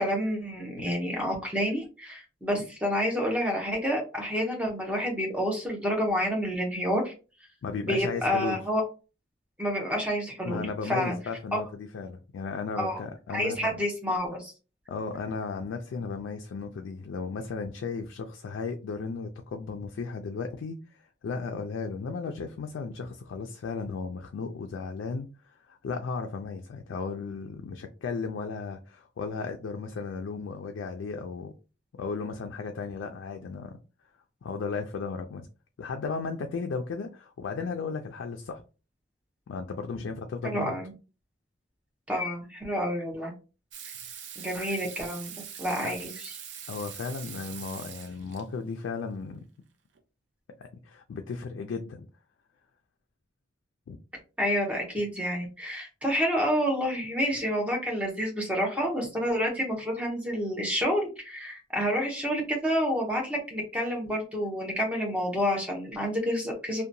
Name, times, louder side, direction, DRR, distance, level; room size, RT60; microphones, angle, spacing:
voice 1, 0.0-7.1 7.8-8.8 9.6-11.2 12.8-13.0 13.3-14.5 40.4-40.9 42.1-43.3 43.8-43.9 44.4-46.3 54.4-66.8, equal, 5° right, 0.7 m, -29 dB
voice 2, 7.6-8.6 10.4-13.8 14.9-31.5 32.0-33.8 34.4-35.5 35.8-38.6 39.5-40.8 45.8-45.9 46.7-49.4 50.8-52.1 53.9-54.0, left 4 dB, 80° left, 0.3 m, -35 dB
Water tap faucet / Sink (filling or washing), 43.7-48.4 50.0-50.1, right 8 dB, 70° right, 0.5 m, -42 dB
2.7 x 2.2 x 2.6 m
head